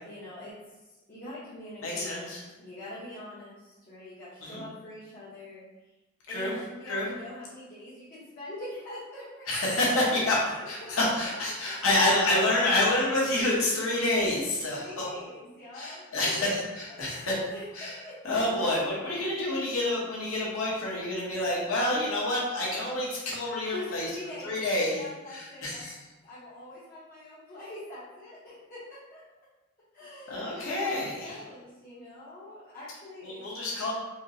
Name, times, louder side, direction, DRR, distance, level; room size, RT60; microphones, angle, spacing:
voice 1, 0.0-0.6 1.1-2.3 2.6-5.6 6.3-9.7 10.4-11.8 14.4-16.6 16.9-17.2 17.5-18.4 23.7-24.6 24.9-25.8 26.2-29.2 29.9-33.4, left 1 dB, 45° left, -13 dB, 0.8 m, -44 dB
voice 2, 1.8-2.4 4.4-4.6 6.3-6.5 6.9-7.1 9.5-15.0 15.7-17.3 17.7-18.0 18.2-24.1 24.4-25.0 25.3-26.0 30.3-31.3 33.2-33.9, left 1 dB, 85° left, -5 dB, 1.0 m, -28 dB
4.2 x 2.0 x 2.6 m, 1.1 s
head